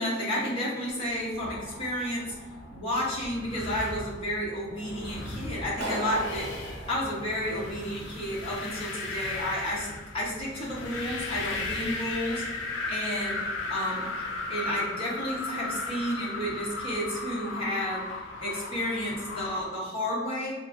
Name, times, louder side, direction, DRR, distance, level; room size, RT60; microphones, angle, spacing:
voice 1, 0.0-2.3 2.7-9.9 10.1-12.4 12.9-13.4 13.7-18.0 18.4-20.5, equal, 30° left, -7 dB, 1.1 m, -31 dB
sound 1, 1.1-19.6, left 2 dB, 80° left, 0.6 m, -37 dB
Clapping, 5.8-7.9, right 1 dB, 65° right, 1.3 m, -37 dB
4.4 x 2.6 x 2.6 m, 1.2 s
head